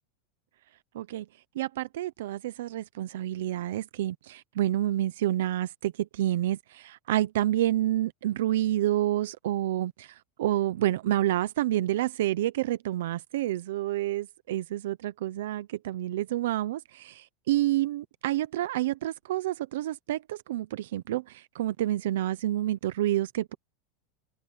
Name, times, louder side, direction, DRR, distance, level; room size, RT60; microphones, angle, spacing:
voice 1, 0.9-1.3 1.5-23.5, right 14 dB, 80° right, 0.7 m, -29 dB
supercardioid pair, 155°, 0 cm